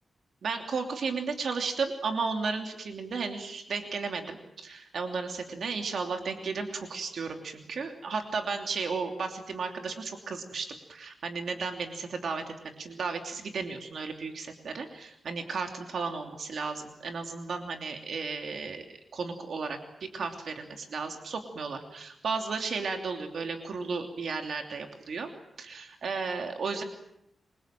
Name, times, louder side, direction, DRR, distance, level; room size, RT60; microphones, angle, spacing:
voice 1, 0.4-18.8 19.1-25.3 25.6-26.8, right 4 dB, 65° right, 4 dB, 2.9 m, -34 dB
28.0 x 24.0 x 7.6 m, 0.81 s
wide cardioid pair, 120°, 0 cm